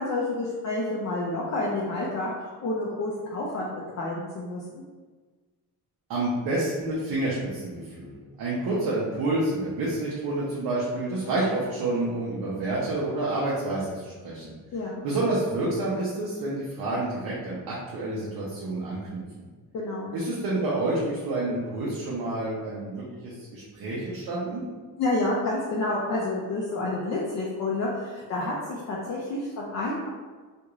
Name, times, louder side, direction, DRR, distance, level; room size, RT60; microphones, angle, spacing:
voice 1, 0.0-3.7 4.0-4.8 14.7-15.0 19.7-20.1 25.0-30.1, left 2 dB, 50° left, -4 dB, 0.4 m, -29 dB
voice 2, 6.1-14.6 15.0-19.2 20.1-24.6, right 2 dB, 85° right, -6 dB, 0.7 m, -29 dB
2.5 x 2.4 x 2.9 m, 1.4 s
cardioid pair, 150°, 36 cm